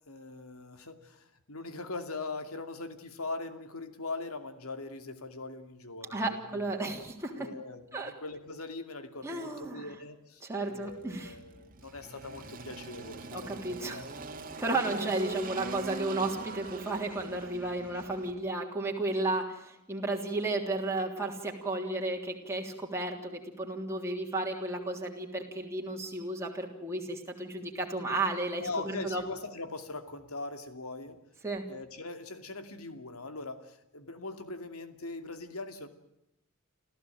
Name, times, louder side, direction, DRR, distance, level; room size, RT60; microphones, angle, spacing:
voice 1, 0.1-6.7 7.3-14.1 28.6-31.2 31.7-35.9, left 3 dB, 80° left, 9 dB, 2.6 m, -41 dB
voice 2, 6.1-7.5 7.9-8.1 9.2-9.9 10.4-11.3 13.3-14.0 14.6-29.2 31.4-31.6, right 2 dB, 15° right, 0 dB, 3.3 m, -33 dB
Engine, 10.9-18.3, right 3 dB, 40° right, 2.1 m, -42 dB
29.0 x 14.5 x 9.1 m, 0.87 s
head